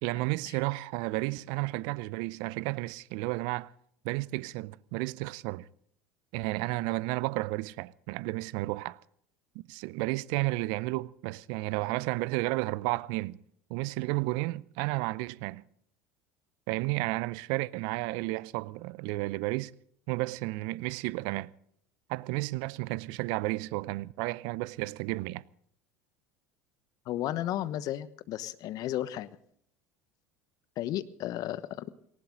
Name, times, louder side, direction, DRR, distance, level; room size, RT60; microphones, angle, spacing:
voice 1, 0.0-3.7 4.0-5.7 6.3-9.0 9.5-13.4 13.7-15.6 16.7-19.7 20.1-21.5 22.1-25.4, right 21 dB, 60° right, 0.6 m, -32 dB
voice 2, 27.1-29.3 30.8-31.9, left 13 dB, 50° left, 1.1 m, -33 dB
19.0 x 18.5 x 3.9 m
hypercardioid pair, 70°, 8 cm